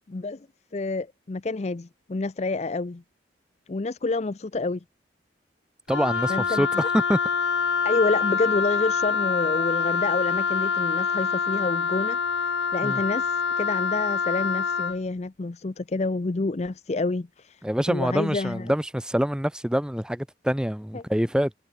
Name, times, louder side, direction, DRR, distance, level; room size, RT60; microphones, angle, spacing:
voice 1, 0.1-0.5 0.7-3.0 3.7-4.8 6.3-6.9 7.8-18.7 20.9-21.0, left 3 dB, 35° left, 0.5 m, -28 dB
Wind instrument woodwind instrument, 5.9-15.0, left 5 dB, 80° left, 1.2 m, -25 dB
voice 2, 5.9-6.7 6.9-7.2 12.8-13.0 17.6-21.5, equal, 5° right, 0.8 m, -25 dB
head